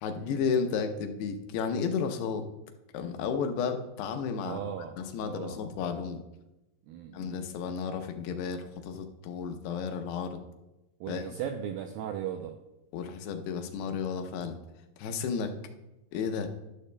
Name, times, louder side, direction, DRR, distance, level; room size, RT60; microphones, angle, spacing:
voice 1, 0.0-2.4 2.9-4.6 5.0-6.2 7.1-10.4 11.1-11.2 12.9-14.6 15.0-15.5 16.1-16.5, left 6 dB, 80° left, 6 dB, 2.8 m, -32 dB
voice 2, 4.4-5.6 6.9-7.4 11.0-12.6, right 9 dB, 85° right, 5 dB, 2.1 m, -38 dB
12.0 x 12.0 x 2.2 m, 0.98 s
omnidirectional pair, 4.8 m